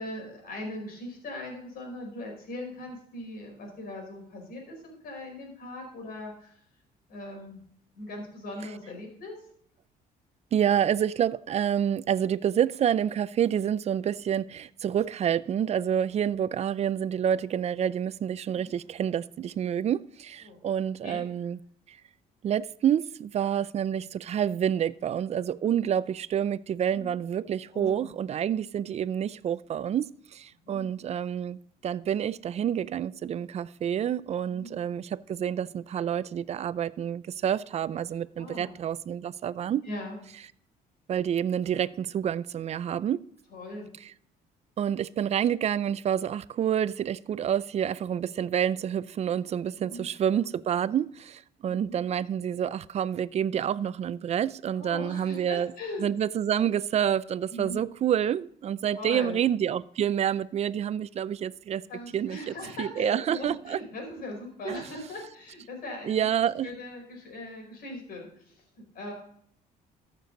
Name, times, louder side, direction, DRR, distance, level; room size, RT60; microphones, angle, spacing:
voice 1, 0.0-6.5 7.1-7.6 7.9-9.4 18.5-18.7 20.4-20.6 21.0-21.2 26.9-27.1 27.7-28.1 30.6-30.9 34.5-34.8 38.4-38.8 39.8-40.2 43.5-43.9 49.8-50.1 51.6-52.0 54.7-56.1 57.5-57.8 58.9-59.4 61.9-66.3 66.6-69.1, left 2 dB, 60° left, 4.7 m, -40 dB
voice 2, 10.5-21.6 21.9-22.0 22.4-39.8 41.1-43.2 44.8-55.7 56.0-61.8 62.1-63.8 64.6-64.8 66.1-66.7, right 9 dB, 40° right, 0.4 m, -28 dB
14.0 x 6.7 x 3.9 m
cardioid pair, 110°, 17 cm